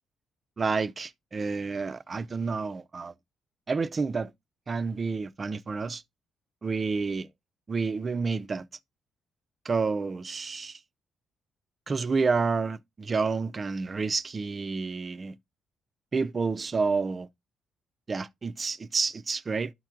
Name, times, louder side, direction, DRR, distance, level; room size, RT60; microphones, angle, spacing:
voice 1, 0.6-3.1 3.7-4.3 4.7-6.0 6.6-7.3 7.7-8.7 9.6-10.8 11.9-15.4 16.1-17.3 18.1-19.7, right 4 dB, 35° right, 0.5 m, -29 dB
12.5 x 4.4 x 2.4 m
cardioid pair, 90°, 0 cm